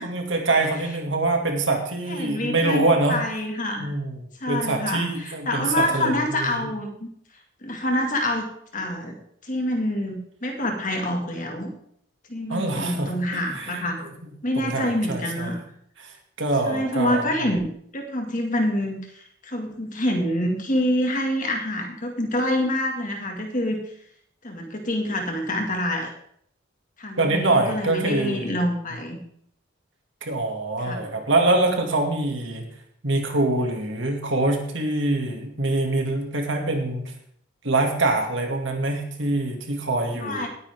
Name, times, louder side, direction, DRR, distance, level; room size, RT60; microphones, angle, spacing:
voice 1, 0.0-3.2 3.8-4.2 4.5-6.6 12.5-13.1 13.5-14.1 14.6-15.6 16.0-17.2 27.2-28.6 30.2-32.7 33.0-37.1 37.6-40.5, right 2 dB, 65° right, 2 dB, 2.4 m, -24 dB
voice 2, 2.1-3.9 4.4-7.1 7.6-8.5 8.7-9.2 9.4-11.7 12.3-14.0 14.4-15.6 16.6-23.8 24.4-26.1 27.0-29.2 30.8-31.1 40.2-40.5, left 1 dB, 40° left, 3 dB, 2.1 m, -26 dB
19.0 x 9.6 x 3.7 m, 0.66 s
head